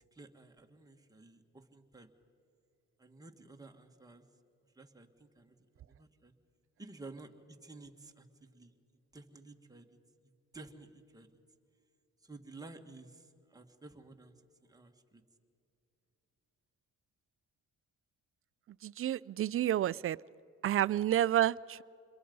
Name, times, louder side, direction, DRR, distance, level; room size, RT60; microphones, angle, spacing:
voice 1, 0.1-2.1 3.0-4.2 4.8-5.6 5.9-6.3 6.8-7.3 7.6-8.3 8.5-8.7 9.1-9.9 10.5-11.3 12.2-13.3 13.5-14.3 14.6-15.2, right 3 dB, 10° right, 3 dB, 1.9 m, -52 dB
voice 2, 18.8-20.2 20.6-21.8, right 12 dB, 45° right, 20 dB, 0.4 m, -30 dB
27.0 x 22.0 x 5.4 m, 2.6 s
cardioid pair, 90°, 30 cm